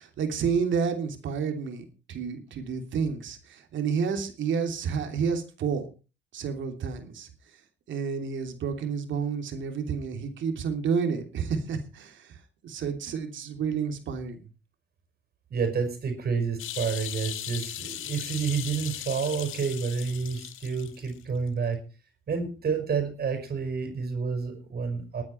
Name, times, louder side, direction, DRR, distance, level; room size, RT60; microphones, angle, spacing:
voice 1, 0.0-5.9 6.3-7.3 7.9-12.4 12.6-14.4, right 6 dB, 70° right, 6 dB, 3.1 m, -30 dB
voice 2, 15.5-21.8 22.3-25.2, right 5 dB, 50° right, 7 dB, 5.3 m, -29 dB
sound 1, 16.6-21.1 21.5-21.6, left 12 dB, 85° left, 1.4 m, -38 dB
20.0 x 9.5 x 4.5 m, 0.33 s
cardioid pair, 90°, 20 cm